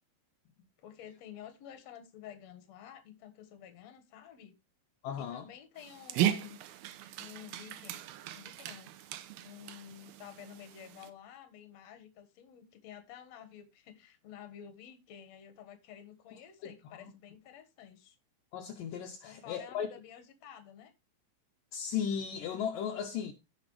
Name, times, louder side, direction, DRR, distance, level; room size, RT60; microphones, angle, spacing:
voice 1, 0.8-4.6 5.2-6.6 7.2-8.0 8.3-8.9 9.4-18.2 19.2-20.9, left 9 dB, 55° left, 2.3 m, -51 dB
voice 2, 5.0-5.5 16.6-16.7 17.0-17.1 18.5-19.9 21.7-23.3, left 8 dB, 70° left, 2.3 m, -36 dB
Dog, 5.8-11.1, right 11 dB, 80° right, 2.6 m, -37 dB
16.0 x 6.1 x 3.2 m
omnidirectional pair, 4.4 m